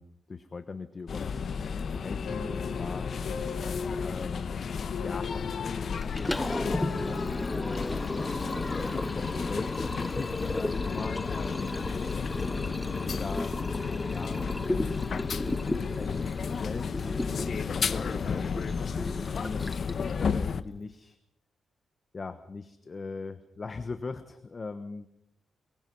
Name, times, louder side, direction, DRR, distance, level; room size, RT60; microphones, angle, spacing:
voice 1, 0.0-3.6 4.0-4.5 5.0-6.4 6.6-8.6 8.9-12.3 13.0-13.6 14.0-14.4 14.7-14.9 15.5-17.5 17.8-18.7 19.4-21.2 22.1-25.1, left 4 dB, 30° left, 10 dB, 1.2 m, -40 dB
sound 1, 1.1-20.6, left 6 dB, 50° left, 0.9 m, -33 dB
sound 2, 2.2-7.3, left 5 dB, 75° left, 3.2 m, -41 dB
Liquid, 6.0-20.1, left 1 dB, 10° left, 0.8 m, -34 dB
24.0 x 22.5 x 5.5 m, 0.75 s
wide cardioid pair, 150°, 0 cm